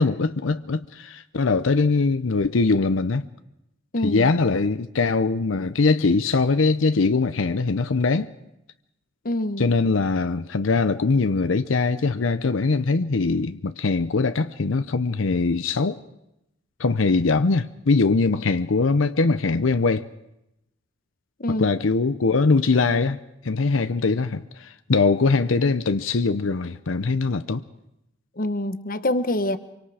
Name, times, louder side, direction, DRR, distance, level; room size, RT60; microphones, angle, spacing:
voice 1, 0.0-3.3 4.0-8.3 9.6-16.0 16.8-20.1 21.6-23.2 23.4-27.6, left 3 dB, 85° left, 0.7 m, -22 dB
voice 2, 3.9-4.3 9.2-9.7 21.4-21.8 28.4-29.6, left 1 dB, 45° left, 1.1 m, -25 dB
25.0 x 24.5 x 4.9 m
head